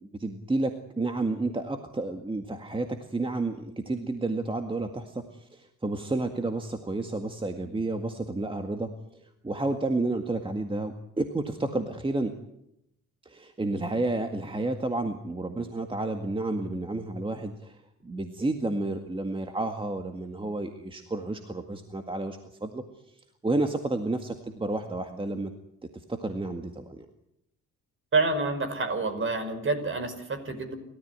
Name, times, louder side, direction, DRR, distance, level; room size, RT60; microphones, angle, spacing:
voice 1, 0.0-8.9 9.4-12.3 13.3-22.8 23.4-25.5 26.1-27.1, right 2 dB, 15° right, 6 dB, 1.9 m, -31 dB
voice 2, 28.1-30.7, right 3 dB, 40° right, 9 dB, 5.2 m, -28 dB
28.5 x 14.0 x 9.6 m, 0.81 s
cardioid pair, 90°, 30 cm